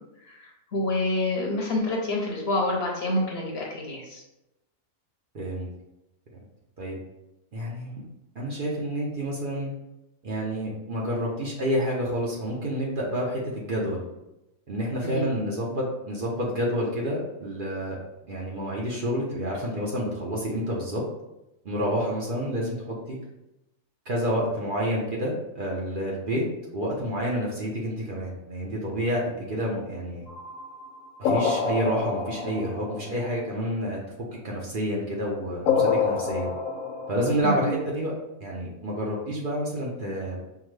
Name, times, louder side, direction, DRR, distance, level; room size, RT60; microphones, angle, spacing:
voice 1, 0.2-4.2 15.0-15.2 37.4-37.7, left 1 dB, 55° left, -1 dB, 0.8 m, -27 dB
voice 2, 5.3-5.7 6.8-7.0 7.5-8.0 8.3-9.7 10.2-14.1 14.7-18.0 18.3-21.0 21.6-23.2 24.1-26.5 26.7-30.3 31.2-34.0 34.4-36.5 37.1-38.1 38.4-40.4, equal, 50° right, -3 dB, 0.8 m, -29 dB
sound 1, 30.3-33.6 35.7-37.4, left 5 dB, 85° left, 1.0 m, -27 dB
5.7 x 2.1 x 3.1 m, 0.91 s
omnidirectional pair, 1.4 m